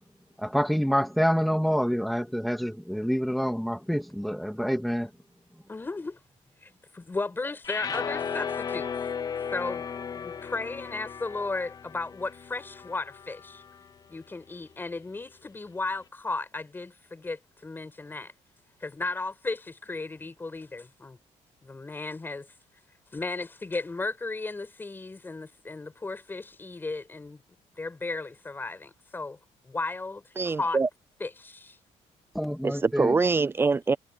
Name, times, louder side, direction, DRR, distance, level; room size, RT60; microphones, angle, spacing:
voice 1, 0.4-5.1 32.3-33.2, equal, ahead, 2.4 m, -27 dB
voice 2, 5.7-6.2 6.6-8.9 9.5-13.6 14.1-18.3 18.8-21.2 21.6-22.5 23.1-27.4 27.8-29.4 29.6-30.8 31.2-31.8, left 3 dB, 15° left, 6.0 m, -35 dB
sound 1, 7.6-13.9, left 7 dB, 30° left, 0.9 m, -35 dB
voice 3, 30.4-30.9 32.6-34.0, right 4 dB, 20° right, 0.4 m, -24 dB
cardioid pair, 145°, 12 cm